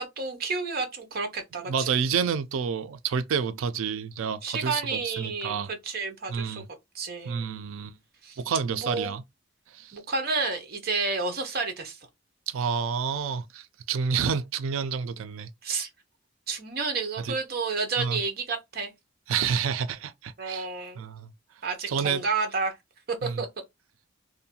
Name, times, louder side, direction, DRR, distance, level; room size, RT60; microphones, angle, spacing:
voice 1, 0.0-1.9 4.4-6.6 6.9-7.5 8.2-8.4 8.7-9.1 9.9-12.0 15.6-15.9 16.5-18.9 20.4-21.0 21.6-22.7 23.2-23.5, right 4 dB, 50° right, 0.7 m, -30 dB
voice 2, 1.7-5.7 6.3-6.7 7.2-7.9 8.4-9.2 9.7-10.0 12.5-15.5 17.2-17.3 18.0-18.2 19.3-20.7 21.0-21.3 21.9-22.2 23.2-23.4, right 6 dB, 85° right, 0.4 m, -29 dB
2.6 x 2.2 x 2.7 m
head